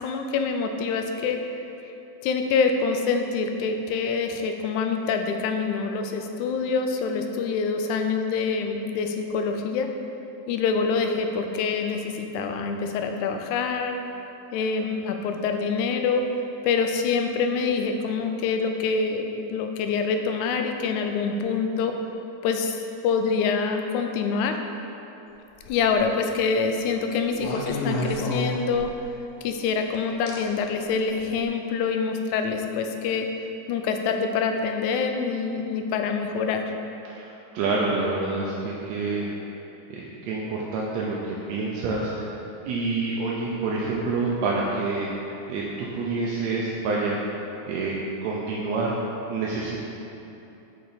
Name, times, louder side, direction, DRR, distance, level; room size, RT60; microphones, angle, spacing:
voice 1, 0.0-1.4 2.2-9.9 10.5-14.0 14.5-16.2 16.6-21.9 22.4-24.6 25.7-28.9 29.4-33.3 33.7-36.7, left 5 dB, 90° left, 5 dB, 2.0 m, -26 dB
sound 1, 25.6-26.0 27.4-29.1 30.3-30.4 31.2-31.4, left 2 dB, 70° left, 1.5 m, -30 dB
voice 2, 37.2-39.3 39.9-42.3 42.7-47.2 47.7-47.9 48.2-48.9 49.3-49.8, right 3 dB, 75° right, -4 dB, 1.8 m, -27 dB
6.5 x 5.6 x 4.1 m, 3.0 s
omnidirectional pair, 3.3 m